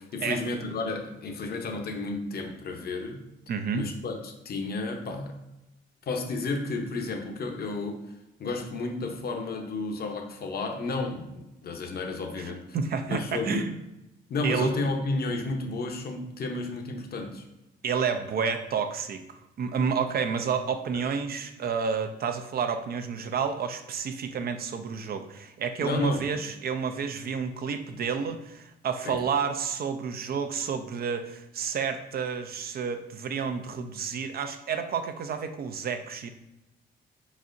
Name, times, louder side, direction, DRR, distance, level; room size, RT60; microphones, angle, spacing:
voice 1, 0.0-3.2 3.7-5.3 6.1-8.1 8.4-12.6 13.1-13.7 14.3-17.4 20.9-21.0 25.8-26.3 29.0-29.2, left 3 dB, 50° left, 3 dB, 0.8 m, -32 dB
voice 2, 3.5-3.9 12.7-13.7 14.4-14.7 17.8-19.2 19.6-36.3, right 6 dB, 50° right, 8 dB, 0.5 m, -30 dB
4.7 x 4.1 x 2.6 m, 0.92 s
cardioid pair, 90°, 20 cm